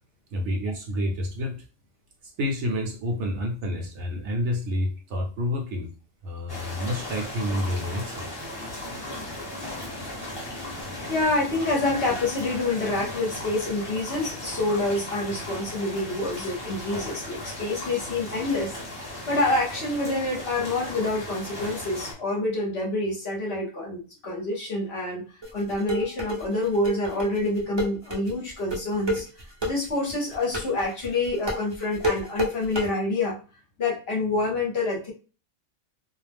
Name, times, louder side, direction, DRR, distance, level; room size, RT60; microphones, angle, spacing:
voice 1, 0.3-1.6 2.4-5.9 6.2-8.3, left 1 dB, 65° right, 1 dB, 0.8 m, -29 dB
sound 1, 6.5-22.1, left 1 dB, 20° left, 0.8 m, -36 dB
voice 2, 11.1-18.8 19.3-25.2 25.5-29.2 29.7-33.4 33.8-35.1, left 2 dB, 55° left, -1 dB, 0.9 m, -27 dB
sound 2, 25.4-32.9, equal, 35° right, 0.4 m, -29 dB
2.5 x 2.0 x 3.3 m, 0.35 s
omnidirectional pair, 1.4 m